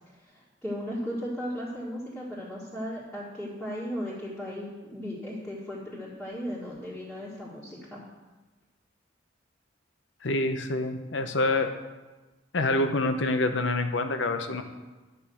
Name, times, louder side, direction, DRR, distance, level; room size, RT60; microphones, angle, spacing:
voice 1, 0.3-8.0, equal, 5° left, -10 dB, 1.7 m, -36 dB
voice 2, 10.2-11.7 12.5-14.6, left 2 dB, 70° left, 7 dB, 0.8 m, -26 dB
9.9 x 5.3 x 7.0 m, 1.2 s
head